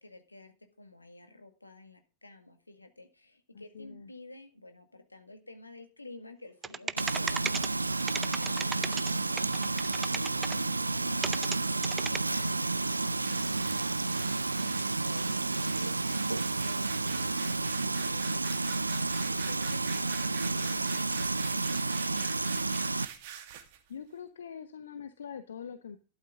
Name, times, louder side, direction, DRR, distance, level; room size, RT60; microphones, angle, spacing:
voice 1, 0.0-22.6, left 2 dB, 85° left, 7 dB, 1.9 m, -52 dB
voice 2, 3.5-4.1 23.9-26.0, left 7 dB, 65° left, 12 dB, 0.9 m, -43 dB
sound 1, 6.6-7.7 8.0-9.1 9.4-10.5 11.2-11.6 11.8-12.2, right 6 dB, 20° right, 0.5 m, -34 dB
Frying (food), 7.0-23.1, right 3 dB, 80° right, 0.5 m, -31 dB
acceleration brush, 13.1-23.8, right 9 dB, 50° right, 2.1 m, -46 dB
12.5 x 11.5 x 3.7 m, 0.35 s
figure-of-eight pair, 90°, 0 cm